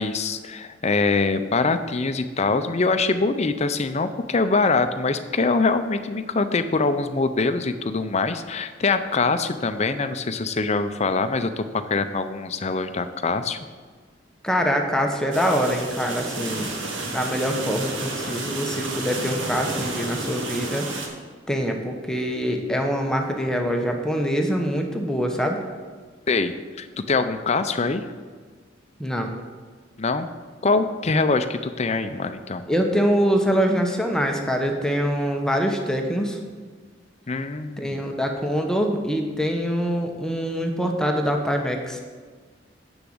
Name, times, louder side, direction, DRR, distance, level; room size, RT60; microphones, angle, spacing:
voice 1, 0.0-13.6 26.3-28.0 30.0-30.3 30.6-32.6 37.3-38.0, left 3 dB, 35° left, 10 dB, 0.6 m, -24 dB
voice 2, 14.4-16.9 17.1-20.9 21.5-25.6 29.0-29.3 32.7-36.4 37.8-42.0, equal, 5° left, 2 dB, 1.0 m, -24 dB
sound 1, 15.3-21.1, right 2 dB, 90° right, 1.8 m, -31 dB
7.2 x 6.8 x 7.8 m, 1.5 s
head